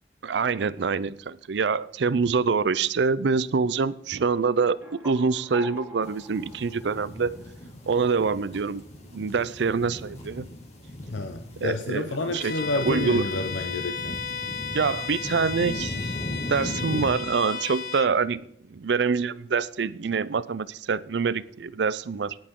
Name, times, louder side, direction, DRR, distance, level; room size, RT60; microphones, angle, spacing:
voice 1, 0.2-4.8 5.0-7.4 7.9-8.8 9.1-10.5 11.6-12.5 12.8-13.2 14.7-16.2 16.5-18.4 18.7-22.4, right 5 dB, 65° right, 0.5 m, -25 dB
sound 1, 4.5-7.8, equal, 15° right, 2.3 m, -45 dB
sound 2, 6.0-17.1, left 1 dB, 35° left, 2.1 m, -38 dB
voice 2, 11.1-14.2, left 3 dB, 85° left, 0.8 m, -30 dB
Bowed string instrument, 12.3-18.1, left 6 dB, 55° left, 0.9 m, -34 dB
19.0 x 10.5 x 3.7 m
head